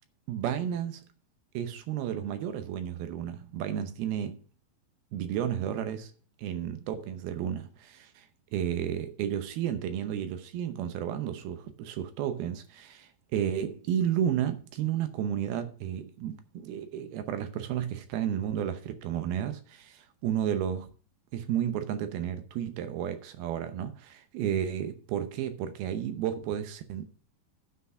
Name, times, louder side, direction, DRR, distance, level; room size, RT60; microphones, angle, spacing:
voice 1, 0.3-1.0 1.5-4.4 5.1-6.1 6.4-8.3 8.5-20.9 21.3-27.1, right 9 dB, 75° right, 2.5 m, -32 dB
9.8 x 6.0 x 5.5 m
omnidirectional pair, 4.9 m